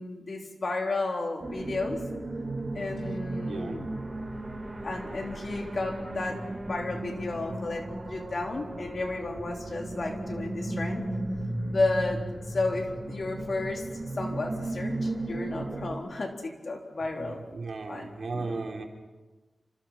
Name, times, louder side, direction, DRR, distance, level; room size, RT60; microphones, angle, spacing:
voice 1, 0.0-2.0 2.7-3.9 4.8-11.0 11.7-12.2 12.5-13.8 14.1-17.4 17.9-18.6, left 3 dB, 55° left, 2 dB, 3.9 m, -32 dB
sound 1, 1.4-16.0, right 2 dB, 30° right, 6.4 m, -35 dB
voice 2, 3.4-3.8 17.2-18.8, right 3 dB, 65° right, 2 dB, 3.6 m, -36 dB
29.0 x 27.0 x 5.9 m, 1.2 s
wide cardioid pair, 110°, 0 cm